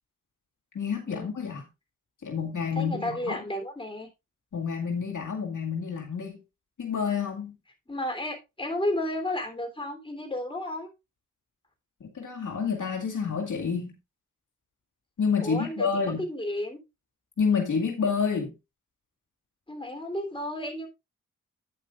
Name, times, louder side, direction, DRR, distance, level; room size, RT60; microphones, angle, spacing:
voice 1, 0.7-1.7 2.2-3.4 4.5-6.4 6.8-7.6 12.0-13.9 15.2-16.2 17.4-18.5, left 6 dB, 70° left, 2.1 m, -28 dB
voice 2, 2.8-4.1 7.9-10.9 15.4-15.9 16.3-16.8 19.7-20.9, left 1 dB, 15° left, 3.4 m, -32 dB
11.0 x 9.0 x 2.5 m
cardioid pair, 65°, 33 cm